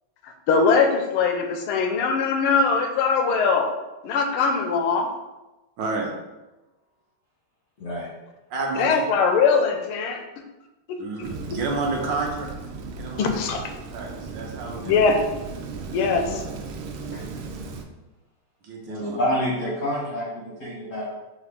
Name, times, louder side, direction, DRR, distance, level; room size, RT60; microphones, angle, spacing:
voice 1, 0.2-3.7 4.0-5.1 8.7-10.2 11.2-11.3 13.2-13.6 14.8-15.2 15.9-16.4, left 5 dB, 90° left, 4 dB, 1.5 m, -21 dB
voice 2, 5.8-6.1 8.5-9.0 11.0-12.5 13.0-13.5 13.9-15.1 18.6-19.2, right 3 dB, 70° right, -1 dB, 1.3 m, -30 dB
Rain, 11.2-17.8, right 4 dB, 90° right, 1.4 m, -36 dB
voice 3, 18.9-21.2, left 1 dB, 65° left, -6 dB, 0.8 m, -28 dB
4.9 x 2.5 x 3.4 m, 1.0 s
omnidirectional pair, 2.3 m